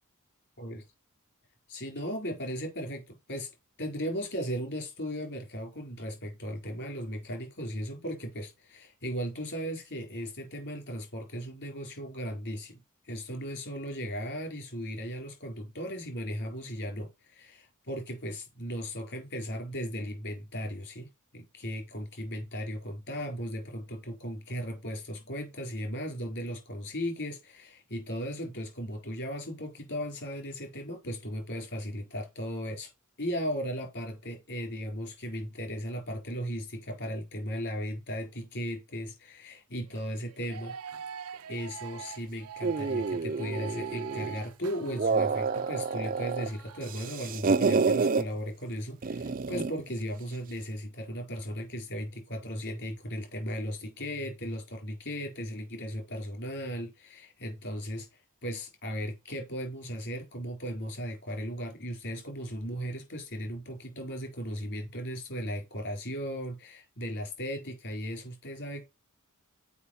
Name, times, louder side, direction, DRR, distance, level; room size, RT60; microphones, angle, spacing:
voice 1, 1.7-3.5 3.8-12.8 13.1-21.1 21.3-32.9 33.2-40.7 41.5-58.1 58.4-68.8, equal, 55° left, 4.2 m, -36 dB
sound 1, 39.9-47.0, right 8 dB, 85° right, 0.6 m, -44 dB
sound 2, 42.6-44.4 44.8-46.5 46.8-48.2 49.0-49.8, right 4 dB, 40° right, 0.5 m, -28 dB
7.1 x 5.1 x 5.6 m
head